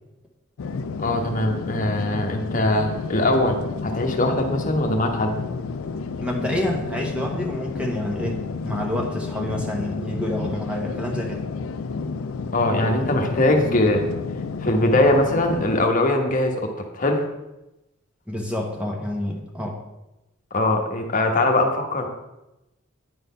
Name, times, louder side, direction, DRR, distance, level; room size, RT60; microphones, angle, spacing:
sound 1, 0.6-15.9, left 4 dB, 80° left, 0.4 m, -31 dB
voice 1, 1.0-5.3 12.5-14.0 14.6-17.3 20.5-22.1, left 1 dB, 40° left, 3 dB, 1.1 m, -21 dB
voice 2, 6.2-11.4 18.3-19.8, left 1 dB, 5° right, 0 dB, 1.0 m, -28 dB
9.5 x 4.0 x 5.4 m, 0.95 s
head